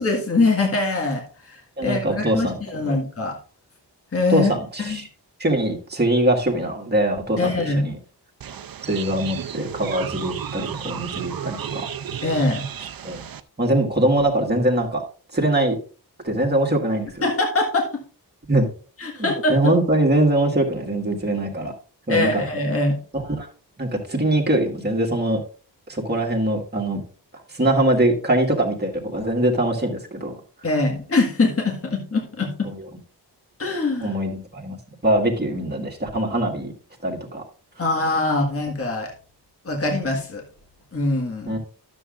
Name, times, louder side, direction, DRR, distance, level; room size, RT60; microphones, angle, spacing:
voice 1, 0.0-3.4 4.1-4.5 4.8-5.0 7.4-7.8 12.2-12.6 17.2-17.9 19.0-19.6 22.1-23.0 30.6-32.7 33.6-34.1 37.8-39.1 39.6-40.4 40.9-41.6, left 2 dB, 35° left, 0 dB, 1.6 m, -23 dB
voice 2, 1.8-2.6 2.9-3.0 4.3-5.1 5.4-8.0 8.9-11.9 13.0-13.2 13.6-15.0 15.3-15.8 16.2-17.2 18.5-18.7 19.2-21.7 22.1-22.5 23.1-23.5 23.8-25.4 25.9-27.0 27.5-30.4 32.6-32.9 34.0-34.8 35.0-36.7 37.0-37.4 41.5-41.6, right 1 dB, 25° right, 1 dB, 1.7 m, -22 dB
sound 1, 8.4-13.4, right 8 dB, 55° right, 0.6 m, -33 dB
12.5 x 7.3 x 2.5 m, 0.37 s
wide cardioid pair, 170°, 41 cm